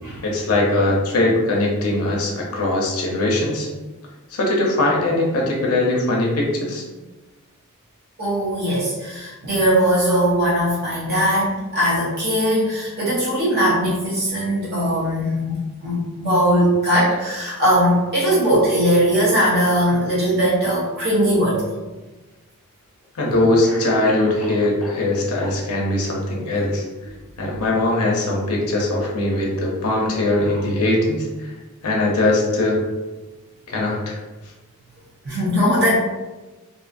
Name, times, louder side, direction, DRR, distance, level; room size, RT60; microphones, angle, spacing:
voice 1, 0.2-3.7 4.3-6.8 23.1-26.8 27.4-31.5 31.8-32.8 33.7-34.2, left 2 dB, 75° left, -2 dB, 0.6 m, -21 dB
voice 2, 8.2-21.6 35.2-35.9, equal, 45° right, -7 dB, 0.7 m, -20 dB
Cough, 21.9-22.0 23.0-23.1 23.6-25.0 25.4-26.0, equal, 5° left, 0.5 m, -36 dB
2.6 x 2.4 x 2.5 m, 1.2 s
head